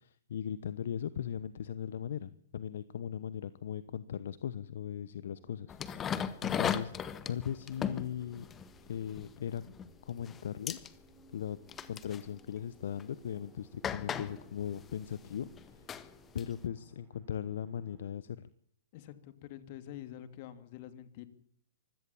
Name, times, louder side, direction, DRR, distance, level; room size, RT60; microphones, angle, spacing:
voice 1, 0.0-5.8 6.4-6.9 7.3-8.5 8.9-9.6 10.1-10.8 11.3-11.6 11.9-15.5 15.8-15.9 16.3-18.4, left 9 dB, 65° left, 17 dB, 1.0 m, -38 dB
sound 1, 5.3-18.1, right 5 dB, 25° right, 4.8 m, -62 dB
sound 2, 5.7-9.9 10.2-10.4 10.7-10.9 11.7-12.3 13.0-13.1 13.8-16.6, left 8 dB, 20° left, 1.5 m, -37 dB
voice 2, 18.9-21.3, left 12 dB, 45° left, 11 dB, 2.8 m, -47 dB
25.0 x 17.0 x 7.2 m, 0.63 s
hypercardioid pair, 120°, 0 cm